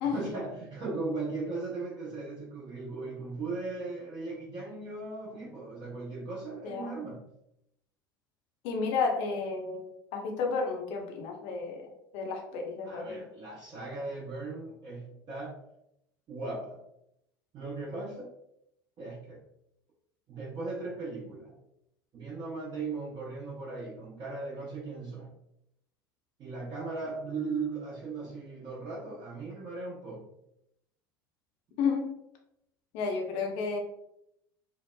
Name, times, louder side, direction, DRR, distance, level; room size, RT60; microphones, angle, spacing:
voice 1, 0.0-7.3 12.8-15.6 16.3-16.8 17.5-18.3 19.0-19.4 20.3-21.6 22.1-25.3 26.4-30.3, right 3 dB, 40° right, -7 dB, 0.7 m, -38 dB
voice 2, 8.6-11.9 12.1-13.2 31.8-32.1 32.9-33.8, left 5 dB, 55° left, 2 dB, 0.6 m, -32 dB
2.7 x 2.0 x 2.2 m, 0.80 s
figure-of-eight pair, 75°, 12 cm